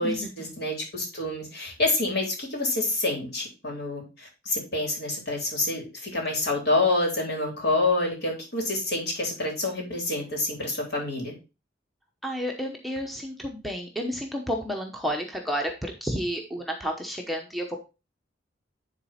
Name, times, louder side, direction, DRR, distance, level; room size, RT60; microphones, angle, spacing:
voice 1, 0.0-11.3, left 2 dB, 60° left, 0 dB, 3.7 m, -27 dB
voice 2, 12.2-17.8, equal, ahead, 1 dB, 0.9 m, -31 dB
10.0 x 4.1 x 4.2 m, 0.29 s
head